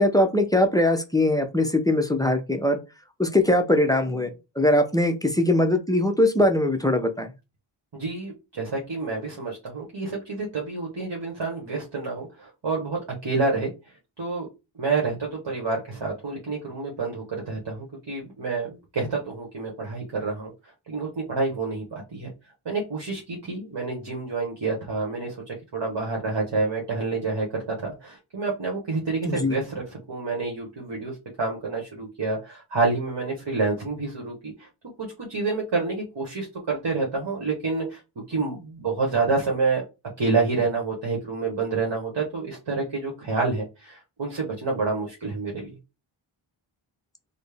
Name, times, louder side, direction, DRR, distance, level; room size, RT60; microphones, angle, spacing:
voice 1, 0.0-2.8 3.2-4.3 4.6-7.3 29.2-29.6, left 1 dB, 10° left, 6 dB, 0.5 m, -21 dB
voice 2, 7.9-13.7 14.2-14.5 14.8-20.5 20.9-22.3 22.6-34.7 35.0-38.0 38.3-39.8 40.2-45.7, right 3 dB, 55° right, -1 dB, 1.1 m, -28 dB
4.1 x 2.0 x 3.4 m, 0.27 s
wide cardioid pair, 90°, 50 cm